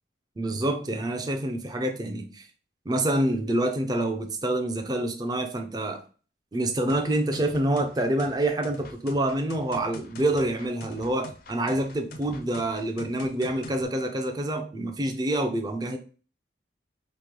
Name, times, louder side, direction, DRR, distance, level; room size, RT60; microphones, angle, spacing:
voice 1, 0.4-2.5 2.9-6.0 6.5-16.0, right 1 dB, 20° right, 5 dB, 0.4 m, -27 dB
sound 1, 6.9-13.8, left 2 dB, 50° left, 0.4 m, -45 dB
3.0 x 2.7 x 3.7 m, 0.39 s
head